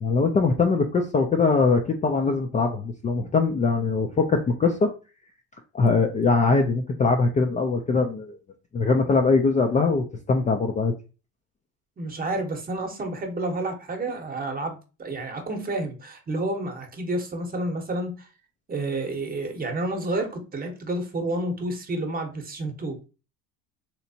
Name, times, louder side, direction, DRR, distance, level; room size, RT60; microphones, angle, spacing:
voice 1, 0.0-4.9 5.7-8.4 8.7-10.9, left 4 dB, 20° left, 3 dB, 0.4 m, -22 dB
voice 2, 12.0-18.3 18.7-23.0, right 2 dB, 25° right, 4 dB, 0.9 m, -30 dB
3.2 x 2.9 x 2.7 m, 0.33 s
supercardioid pair, 100°, 35 cm